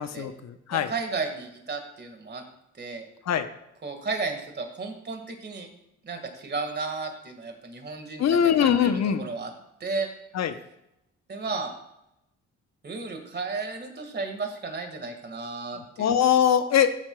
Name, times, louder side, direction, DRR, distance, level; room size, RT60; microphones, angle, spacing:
voice 1, 0.0-0.9 3.3-3.5 8.2-9.2 10.3-10.6 16.0-17.0, left 8 dB, 60° left, 10 dB, 0.9 m, -22 dB
voice 2, 0.7-2.4 2.8-3.1 3.8-5.7 6.0-9.5 9.8-10.1 11.3-11.7 12.8-16.1, right 4 dB, 35° right, 4 dB, 1.8 m, -33 dB
14.5 x 7.3 x 2.3 m, 0.85 s
cardioid pair, 90°, 30 cm